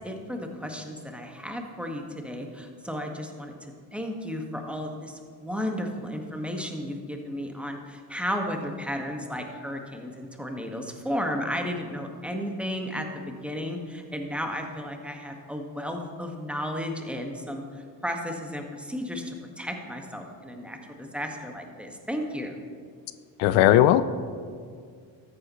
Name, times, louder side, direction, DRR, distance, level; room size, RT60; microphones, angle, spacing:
voice 1, 0.0-22.6, equal, ahead, 3 dB, 1.6 m, -34 dB
voice 2, 23.4-24.0, left 13 dB, 75° left, 14 dB, 0.5 m, -17 dB
13.5 x 9.7 x 3.1 m, 2.1 s
hypercardioid pair, 55°, 48 cm